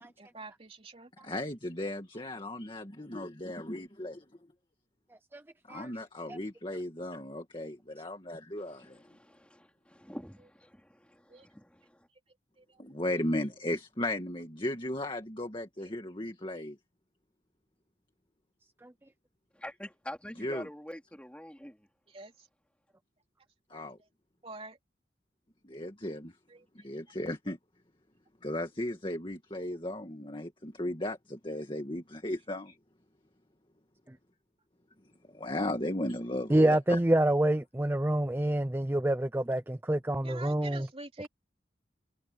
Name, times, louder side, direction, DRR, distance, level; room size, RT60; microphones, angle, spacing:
voice 1, 0.2-1.1 11.3-11.5 12.6-12.8 15.8-15.9 22.1-22.3 23.7-23.8 24.4-24.8 26.5-26.9 40.2-41.3, right 3 dB, 30° right, 3.2 m, -47 dB
voice 2, 1.2-4.2 5.7-9.0 12.8-16.8 20.4-20.7 23.7-24.0 25.6-26.3 26.8-27.6 28.4-32.8 35.3-37.0, left 1 dB, 30° left, 2.0 m, -36 dB
voice 3, 8.6-12.1 19.5-21.9, left 1 dB, 5° left, 3.0 m, -46 dB
voice 4, 36.5-40.9, right 1 dB, 10° right, 0.5 m, -27 dB
head